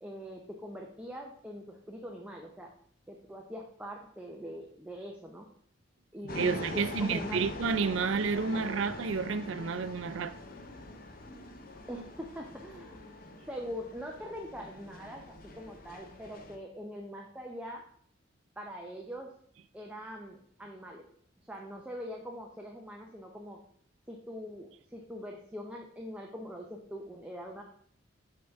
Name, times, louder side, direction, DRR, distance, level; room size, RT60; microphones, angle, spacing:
voice 1, 0.0-2.7 3.1-5.5 6.1-7.5 11.9-13.0 13.5-17.8 18.6-19.3 19.7-21.0 21.4-23.6 24.1-27.6, equal, 5° right, 0.5 m, -43 dB
sound 1, 6.3-16.6, left 2 dB, 45° left, 0.7 m, -43 dB
voice 2, 6.4-10.3, right 5 dB, 75° right, 0.4 m, -30 dB
6.7 x 5.4 x 3.4 m
head